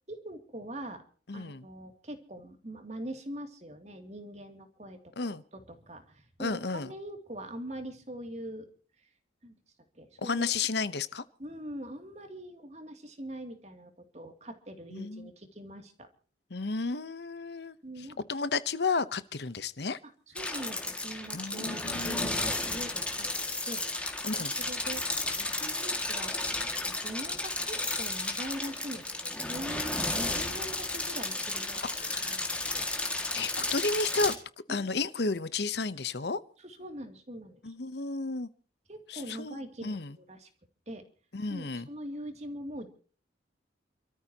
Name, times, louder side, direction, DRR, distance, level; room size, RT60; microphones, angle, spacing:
voice 1, 0.1-1.0 1.3-8.7 9.0-9.1 9.4-9.5 9.9-10.5 11.4-16.1 17.8-18.2 20.3-24.0 24.3-26.3 26.6-32.9 34.7-34.9 36.6-37.7 38.9-40.5 40.9-41.0 41.5-42.9, right 1 dB, 35° right, 6 dB, 2.6 m, -43 dB
voice 2, 1.3-1.6 5.2-5.4 6.4-6.9 10.2-11.2 14.9-15.3 16.5-17.8 18.3-20.0 21.3-22.4 24.2-24.5 31.9-32.5 33.3-34.4 34.7-36.4 37.6-38.5 39.1-40.1 41.3-41.9, left 4 dB, 65° left, 15 dB, 0.8 m, -32 dB
sound 1, 20.4-34.3, left 2 dB, 5° left, 2.0 m, -33 dB
29.5 x 13.5 x 2.9 m, 0.41 s
head